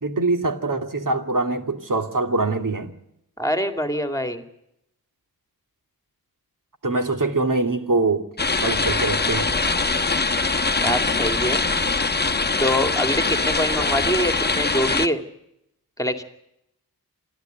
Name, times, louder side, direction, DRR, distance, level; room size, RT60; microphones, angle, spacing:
voice 1, 0.0-2.9 6.8-8.3 8.6-9.6, right 3 dB, 55° right, 2.5 m, -23 dB
voice 2, 3.4-4.4 10.8-11.7 12.6-15.2 16.0-16.2, equal, 10° left, 2.3 m, -24 dB
sound 1, 8.4-15.1, left 3 dB, 25° left, 1.1 m, -22 dB
27.5 x 11.5 x 9.2 m
wide cardioid pair, 85°, 38 cm